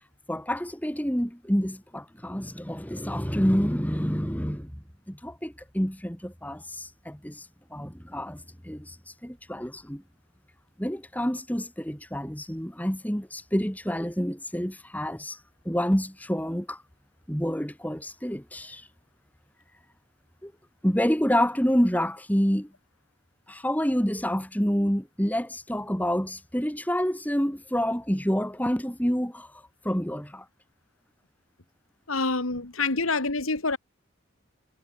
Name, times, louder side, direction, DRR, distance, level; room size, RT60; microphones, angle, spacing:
voice 1, 0.3-4.7 5.1-7.4 7.7-9.0 9.2-10.0 10.8-15.4 15.6-16.8 17.3-18.8 20.4-20.5 20.8-22.7 23.5-29.5 29.8-30.4, equal, 10° left, 3.1 m, -28 dB
voice 2, 32.1-33.8, left 3 dB, 85° left, 2.6 m, -27 dB
head